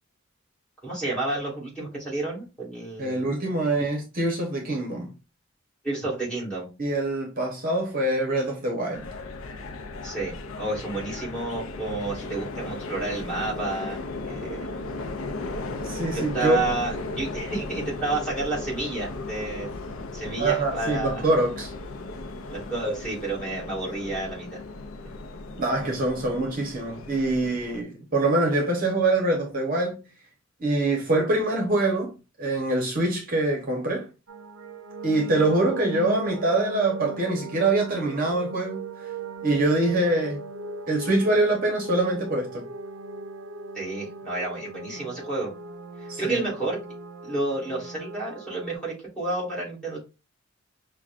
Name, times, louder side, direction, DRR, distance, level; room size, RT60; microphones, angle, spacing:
voice 1, 0.8-3.2 5.8-6.7 10.0-14.0 14.3-14.7 16.1-19.7 20.1-21.2 22.5-24.6 43.7-45.5 46.0-46.8 47.2-50.0, right 2 dB, 5° left, 2.0 m, -30 dB
voice 2, 3.0-5.1 6.8-9.1 15.8-16.6 20.4-21.7 25.6-30.1 30.6-34.1 35.0-39.1 39.4-40.4 40.9-42.7 46.1-46.4, right 2 dB, 45° right, 0.9 m, -24 dB
sound 1, 8.9-27.8, left 2 dB, 75° left, 0.5 m, -36 dB
sound 2, 34.3-48.8, right 3 dB, 65° right, 0.6 m, -38 dB
5.8 x 2.2 x 2.4 m
head